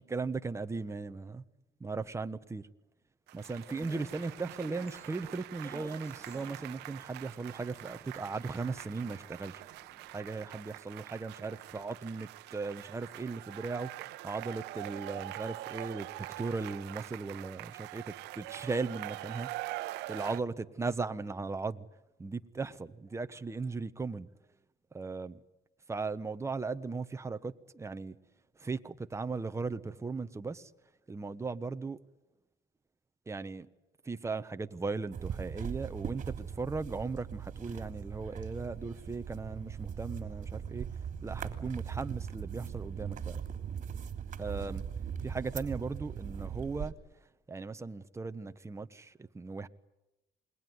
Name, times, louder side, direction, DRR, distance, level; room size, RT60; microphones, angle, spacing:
voice 1, 0.0-1.4 1.8-2.7 3.3-9.6 10.1-13.9 14.2-16.1 16.4-19.5 20.1-21.9 22.2-24.3 24.9-25.4 25.9-28.2 28.6-30.7 31.1-32.0 33.3-33.7 34.0-40.9 41.2-43.4 44.4-44.8 45.2-46.9 47.5-49.7, right 4 dB, 15° right, 1.3 m, -37 dB
sound 1, 3.3-20.4, right 18 dB, 90° right, 0.9 m, -44 dB
sound 2, 3.7-10.8, left 1 dB, 15° left, 2.3 m, -55 dB
sound 3, 35.1-46.9, right 8 dB, 50° right, 3.1 m, -40 dB
28.0 x 21.5 x 9.6 m
cardioid pair, 110°, 17 cm